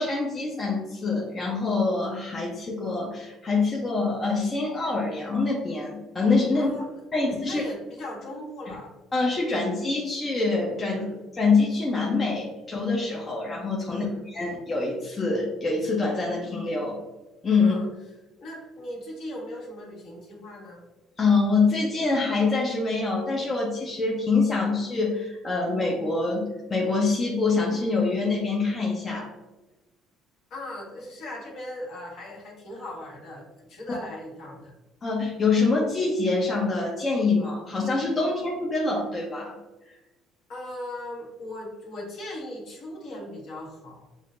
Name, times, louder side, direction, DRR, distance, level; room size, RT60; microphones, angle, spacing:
voice 1, 0.0-6.7 7.1-7.6 9.1-11.0 11.4-17.0 17.4-17.7 21.2-29.3 33.9-34.0 35.0-39.5, left 3 dB, 30° left, -3 dB, 0.8 m, -25 dB
voice 2, 6.5-8.9 10.9-11.2 13.9-14.2 17.6-17.9 18.4-20.8 30.5-34.7 40.5-44.1, left 1 dB, 60° left, -4 dB, 1.4 m, -39 dB
6.3 x 2.1 x 2.5 m, 1.1 s
supercardioid pair, 75°, 0 cm